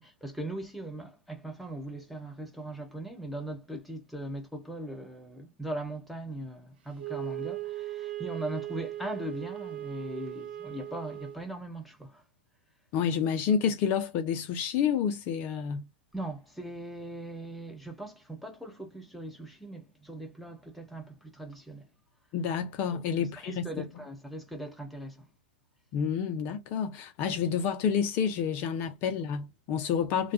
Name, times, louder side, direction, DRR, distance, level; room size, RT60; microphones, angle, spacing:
voice 1, 0.0-12.2 16.1-21.9 22.9-25.3, right 1 dB, ahead, 0.7 m, -40 dB
Wind instrument woodwind instrument, 7.0-11.5, right 14 dB, 65° right, 0.5 m, -38 dB
voice 2, 12.9-15.9 22.3-23.8 25.9-30.3, left 7 dB, 40° left, 0.5 m, -29 dB
2.2 x 2.2 x 2.6 m
hypercardioid pair, 115°, 6 cm